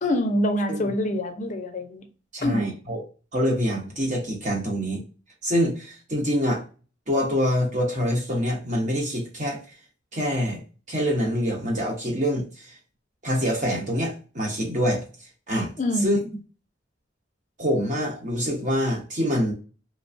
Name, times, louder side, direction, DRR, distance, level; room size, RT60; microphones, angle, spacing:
voice 1, 0.0-2.1 2.4-2.7 15.8-16.2, left 1 dB, 40° left, 0.5 m, -25 dB
voice 2, 2.3-3.0 3.3-5.0 5.4-6.6 7.1-9.6 10.1-10.6 10.9-12.7 13.2-15.0 15.5-15.7 16.0-16.2 17.6-19.5, equal, 40° right, 1.0 m, -25 dB
3.2 x 2.2 x 2.5 m
head